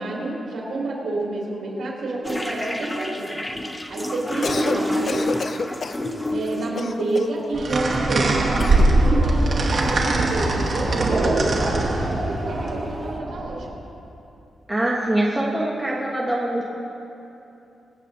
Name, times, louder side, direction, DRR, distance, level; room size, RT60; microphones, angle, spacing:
voice 1, 0.0-3.4 3.9-5.3 6.3-13.8, right 2 dB, 65° right, -4 dB, 2.9 m, -29 dB
sound 1, 2.2-6.8 7.8-7.9 8.3-8.4 8.8-9.2 9.6-10.0 10.3-12.7, left 1 dB, 15° left, 0.7 m, -29 dB
Cough, 4.3-4.8 5.1-6.1 6.8-7.4 8.6-8.9, left 4 dB, 45° left, 0.3 m, -29 dB
sound 2, 7.5-13.6, right 2 dB, 45° right, 1.4 m, -21 dB
voice 2, 14.7-16.6, right 1 dB, 10° right, -4 dB, 1.2 m, -23 dB
23.5 x 8.2 x 2.7 m, 2.8 s
wide cardioid pair, 135°, 0 cm